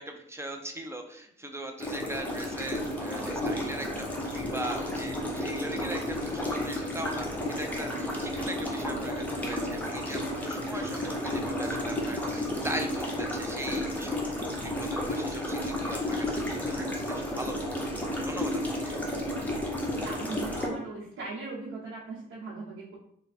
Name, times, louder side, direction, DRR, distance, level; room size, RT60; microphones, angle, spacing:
voice 1, 0.0-17.7 18.2-19.0, right 1 dB, 15° right, 4 dB, 0.5 m, -40 dB
sound 1, 1.8-20.7, left 1 dB, 10° left, 0.9 m, -32 dB
voice 2, 19.9-23.0, right 3 dB, 80° right, -5 dB, 0.9 m, -39 dB
3.3 x 2.2 x 4.1 m, 0.69 s
cardioid pair, 90°, 20 cm